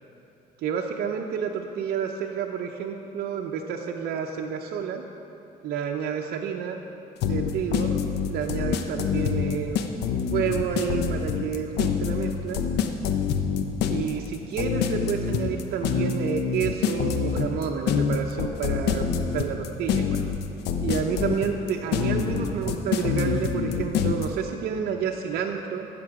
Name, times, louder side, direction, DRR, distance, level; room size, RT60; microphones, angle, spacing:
voice 1, 0.6-5.0 5.6-6.8 7.2-8.0 8.3-9.8 10.3-12.6 13.9-20.2 20.8-25.9, right 7 dB, 70° right, 1 dB, 0.7 m, -29 dB
sound 1, 7.2-24.3, left 7 dB, 80° left, 0.7 m, -26 dB
14.5 x 7.1 x 4.9 m, 2.8 s
cardioid pair, 110°, 17 cm